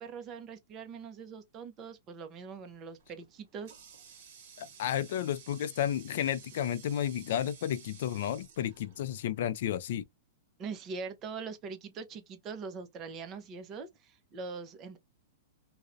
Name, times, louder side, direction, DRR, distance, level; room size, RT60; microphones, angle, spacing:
voice 1, 0.0-3.7 10.6-15.0, right 5 dB, 20° right, 0.5 m, -42 dB
Water tap faucet, 3.0-9.5, right 7 dB, 50° right, 1.0 m, -54 dB
voice 2, 4.6-10.0, left 10 dB, 55° left, 0.3 m, -32 dB
2.4 x 2.0 x 2.5 m
supercardioid pair, 165°, 0 cm